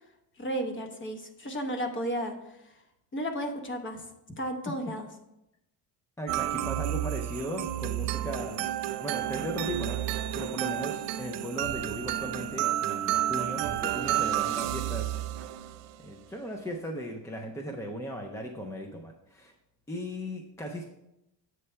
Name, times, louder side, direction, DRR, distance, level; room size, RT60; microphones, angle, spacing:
voice 1, 0.4-2.8 3.1-4.0 4.4-5.1, equal, 25° left, 4 dB, 0.9 m, -33 dB
voice 2, 6.2-8.7 9.0-15.2 16.0-19.5 19.9-20.8, equal, 10° left, 2 dB, 0.4 m, -37 dB
sound 1, 6.3-16.0, right 12 dB, 85° right, 0.5 m, -31 dB
7.8 x 3.3 x 5.5 m, 0.87 s
cardioid pair, 140°, 43 cm